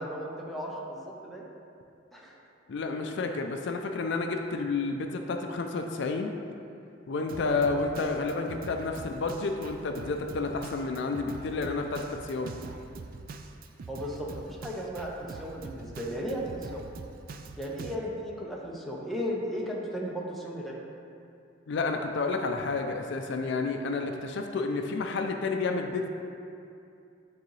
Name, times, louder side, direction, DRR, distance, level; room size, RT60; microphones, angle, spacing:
voice 1, 0.0-1.4 2.1-2.4 3.0-3.2 7.4-7.7 13.9-16.8 17.6-20.8, equal, ahead, -4 dB, 0.7 m, -35 dB
voice 2, 2.7-6.3 7.1-12.6 21.7-26.1, left 3 dB, 65° left, 4 dB, 0.4 m, -30 dB
Drum kit, 7.3-17.9, right 3 dB, 50° right, 0.4 m, -44 dB
9.6 x 3.8 x 3.2 m, 2.6 s
head